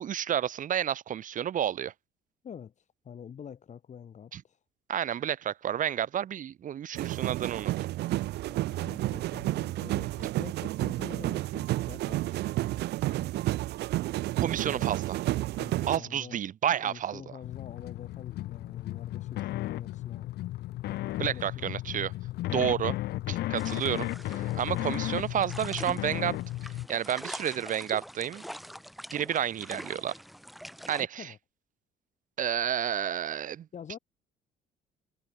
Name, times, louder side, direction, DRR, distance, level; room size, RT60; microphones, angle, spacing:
voice 1, 0.0-1.9 4.3-4.4 4.9-7.7 14.4-15.2 15.9-17.2 21.2-22.1 22.5-23.0 23.3-26.4 26.9-28.4 29.1-30.1 30.9-31.3 32.4-33.7, right 10 dB, 50° right, 2.0 m, -30 dB
voice 2, 2.4-4.6 8.5-13.3 14.7-14.9 15.5-16.4 16.8-20.3 20.9-21.7 23.4-23.7 31.2-31.4 33.7-34.0, left 8 dB, 45° left, 6.7 m, -46 dB
sound 1, 6.9-16.0, right 16 dB, 80° right, 2.7 m, -31 dB
sound 2, 17.4-26.9, left 16 dB, 75° left, 1.5 m, -34 dB
sound 3, 23.6-31.0, equal, ahead, 1.7 m, -44 dB
cardioid pair, 110°, 17 cm